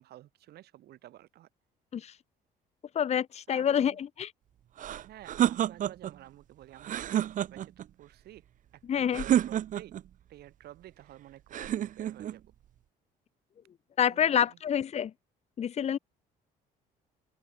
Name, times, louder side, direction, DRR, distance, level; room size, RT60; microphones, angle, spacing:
voice 1, 0.0-1.5 3.5-4.0 4.9-8.4 8.9-10.0 10.3-12.5 14.0-14.6, right 14 dB, 70° right, 5.8 m, -52 dB
voice 2, 2.9-4.3 8.9-9.2 14.0-15.1 15.6-16.0, left 9 dB, 40° left, 0.9 m, -27 dB
sound 1, 4.8-6.2 6.8-7.9 9.1-10.1 11.5-12.4, right 11 dB, 50° right, 0.8 m, -29 dB
open air
cardioid pair, 110°, 17 cm